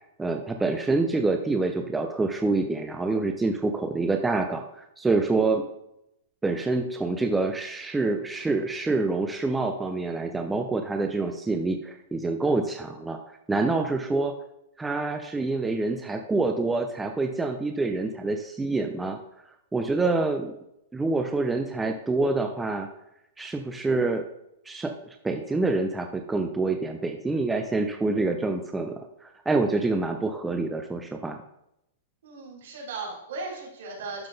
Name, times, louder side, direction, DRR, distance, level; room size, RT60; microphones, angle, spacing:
voice 1, 0.2-5.6 6.4-13.2 13.5-14.3 14.8-19.2 19.7-20.5 20.9-22.9 23.4-24.2 24.7-24.9 25.2-28.9 29.2-31.4, right 3 dB, 5° right, 4 dB, 0.3 m, -26 dB
voice 2, 32.2-34.3, right 3 dB, 65° right, -2 dB, 3.2 m, -37 dB
11.5 x 3.9 x 3.8 m, 0.83 s
supercardioid pair, 180°, 0 cm